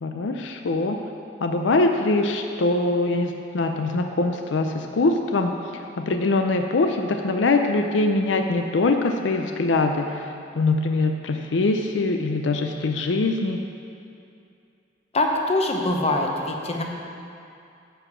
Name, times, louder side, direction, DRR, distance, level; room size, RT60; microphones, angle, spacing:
voice 1, 0.0-1.0 1.4-5.5 6.0-10.3 10.6-13.6, left 3 dB, 80° left, 4 dB, 0.5 m, -23 dB
voice 2, 15.1-16.8, left 2 dB, 35° left, 1 dB, 0.9 m, -23 dB
10.0 x 4.8 x 7.2 m, 2.6 s
head